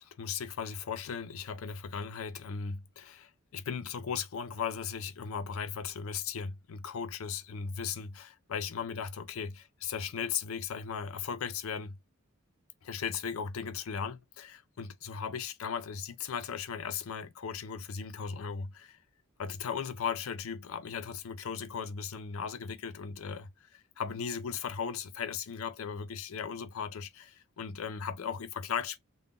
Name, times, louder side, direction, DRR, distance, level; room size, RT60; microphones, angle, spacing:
voice 1, 0.0-12.0 12.8-19.0 19.4-29.0, left 6 dB, 75° left, 0.4 m, -37 dB
2.5 x 2.1 x 3.5 m
head